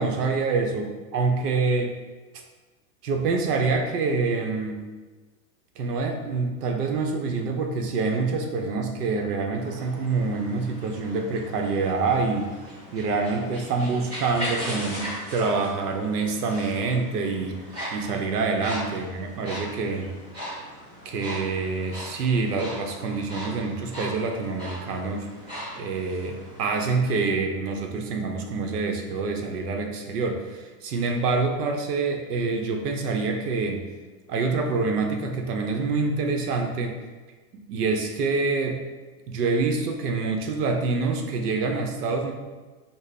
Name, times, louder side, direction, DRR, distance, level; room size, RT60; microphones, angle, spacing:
voice 1, 0.0-1.9 3.0-4.8 5.8-12.5 12.9-17.6 17.9-20.1 21.0-25.3 25.8-33.9 34.3-37.0 37.5-38.8 39.3-42.3, right 4 dB, 80° right, 3 dB, 0.7 m, -26 dB
sound 1, 9.5-27.2, equal, 10° right, 0.8 m, -39 dB
3.3 x 2.0 x 4.0 m, 1.3 s
supercardioid pair, 180°, 46 cm